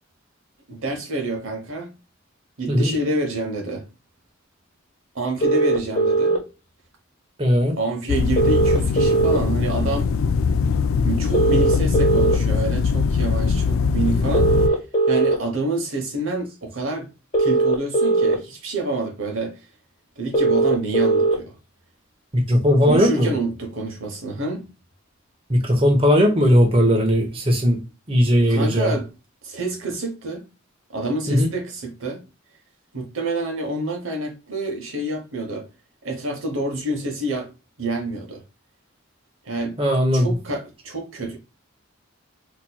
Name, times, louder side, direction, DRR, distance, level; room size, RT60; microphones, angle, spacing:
voice 1, 0.7-1.9 2.6-3.8 5.1-6.4 7.8-10.1 11.0-14.8 15.1-17.1 17.4-19.7 20.2-21.6 22.8-24.7 28.5-29.1 29.4-30.4 30.9-32.2 32.9-35.7 36.0-37.5 37.8-38.4 39.4-39.7 40.1-41.4, right 2 dB, 75° right, 1.1 m, -27 dB
sound 1, 5.4-6.4 8.4-9.4 11.3-12.4 14.3-15.4 17.3-18.4 20.3-21.4, right 3 dB, 40° left, 1.2 m, -19 dB
voice 2, 7.4-7.8 22.3-23.3 25.5-27.8 28.1-28.9 31.3-31.5 39.8-40.3, equal, 30° right, 1.0 m, -18 dB
sound 2, 8.1-14.7, left 5 dB, 80° left, 0.3 m, -21 dB
4.3 x 3.0 x 2.2 m
head